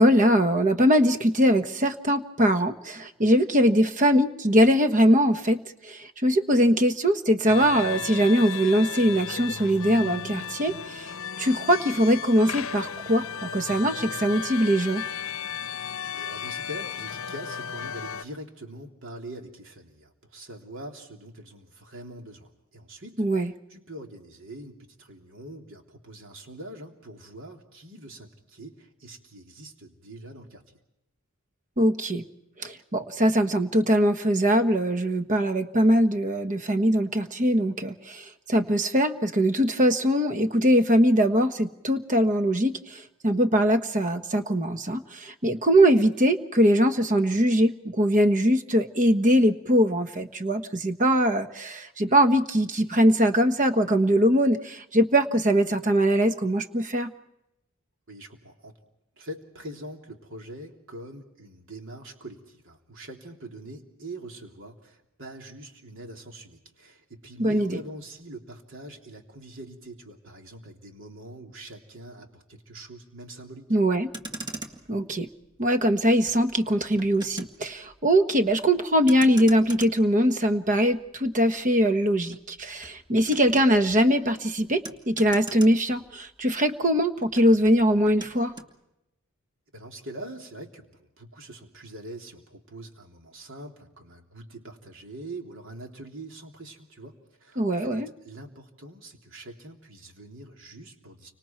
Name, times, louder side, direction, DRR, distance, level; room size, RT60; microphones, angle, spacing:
voice 1, 0.0-11.1 11.4-15.0 23.2-23.5 31.8-32.2 32.6-57.1 67.4-67.8 73.7-74.1 74.9-75.3 75.6-88.5 97.6-98.1, equal, 40° right, 8 dB, 1.3 m, -22 dB
sound 1, 7.5-18.2, left 7 dB, 65° left, 0.7 m, -35 dB
voice 2, 16.1-30.6 58.1-58.8 59.2-73.7 89.7-101.3, right 1 dB, 65° right, 2 dB, 3.4 m, -43 dB
Motor vehicle (road), 74.0-86.6 86.8-88.7, right 2 dB, 20° right, 1.9 m, -43 dB
30.0 x 25.5 x 4.6 m, 0.86 s
head